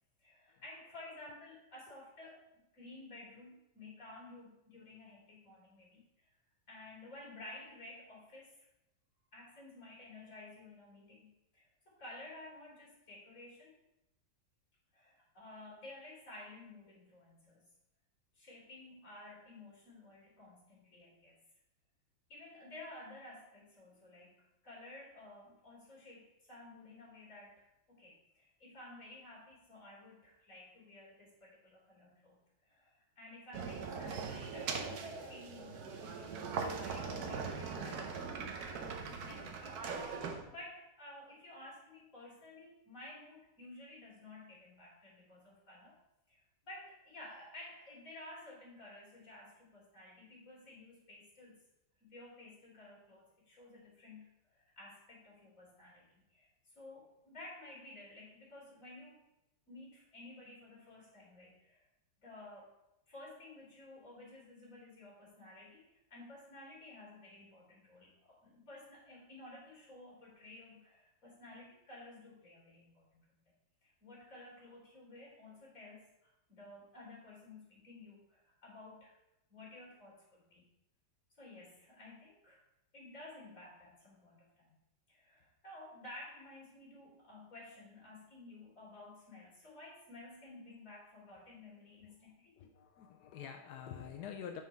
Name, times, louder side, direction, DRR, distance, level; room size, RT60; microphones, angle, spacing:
voice 1, 0.2-6.3 6.7-8.6 9.3-13.7 14.9-17.6 18.3-21.3 22.3-46.0 46.3-51.6 52.0-59.2 59.7-61.9 62.2-62.7 63.1-73.2 73.8-76.1 76.5-79.2 79.5-80.7 81.4-82.6 82.9-84.8 85.1-92.5, left 2 dB, 40° left, -5 dB, 3.3 m, -53 dB
sound 1, 33.5-40.4, right 5 dB, 60° right, 1.1 m, -41 dB
voice 2, 92.5-94.6, left 8 dB, 75° left, 4 dB, 0.9 m, -47 dB
6.3 x 5.7 x 4.4 m, 0.89 s
omnidirectional pair, 2.2 m